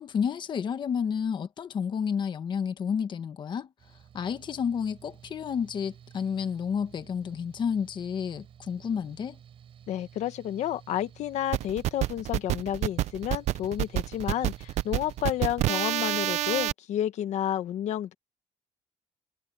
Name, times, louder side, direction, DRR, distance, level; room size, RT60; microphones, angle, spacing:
voice 1, 0.0-3.7 4.1-9.4, left 7 dB, 40° left, 1.2 m, -30 dB
Mechanical fan, 3.8-15.7, right 9 dB, 50° right, 5.1 m, -53 dB
voice 2, 9.9-18.1, left 11 dB, 85° left, 1.3 m, -30 dB
sound 1, 11.5-16.7, right 15 dB, 75° right, 0.4 m, -28 dB
cardioid pair, 175°, 12 cm